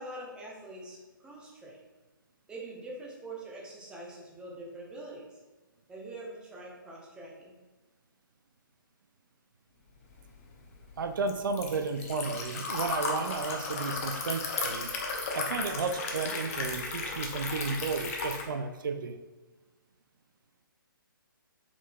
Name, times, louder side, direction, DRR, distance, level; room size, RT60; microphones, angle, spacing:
voice 1, 0.0-1.8 2.5-5.4 5.9-7.6, right 2 dB, 5° right, -3 dB, 0.7 m, -44 dB
Liquid, 10.2-18.5, left 3 dB, 40° left, 0.7 m, -35 dB
voice 2, 11.0-14.9 15.3-19.2, right 4 dB, 65° right, 7 dB, 0.4 m, -33 dB
4.6 x 3.6 x 2.3 m, 1.2 s
figure-of-eight pair, 135°, 12 cm